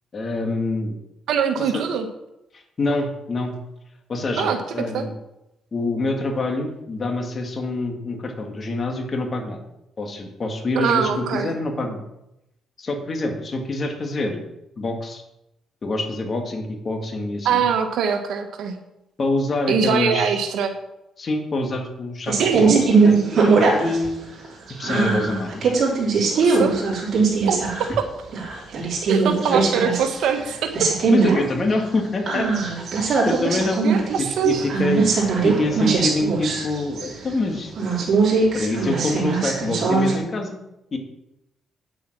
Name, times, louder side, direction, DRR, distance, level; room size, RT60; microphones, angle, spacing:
voice 1, 0.1-1.0 1.6-1.8 2.5-3.5 4.1-5.1 5.7-9.6 10.0-12.0 12.8-14.4 14.8-15.2 15.8-17.7 19.2-20.4 21.2-22.7 23.0-23.2 23.5-24.3 24.8-25.7 29.5-29.6 31.1-32.5 33.0-33.8 34.2-35.1 35.4-37.7 38.5-40.6 40.9-41.0, left 2 dB, 40° left, 3 dB, 2.3 m, -26 dB
voice 2, 1.3-2.1 4.4-4.6 4.9-5.0 10.7-11.5 17.4-18.8 19.7-20.7 22.4-22.9 26.3-26.7 27.5-27.6 28.7-28.8 29.1-30.9 33.8-34.6, right 7 dB, 80° right, 7 dB, 1.5 m, -22 dB
sound 1, 22.3-24.1 24.4-28.0 28.3-30.5 30.7-31.4 31.7-31.8 32.3-37.3 37.8-40.2, right 4 dB, 55° right, 3.9 m, -20 dB
9.4 x 7.9 x 6.1 m, 0.89 s
cardioid pair, 90°, 0 cm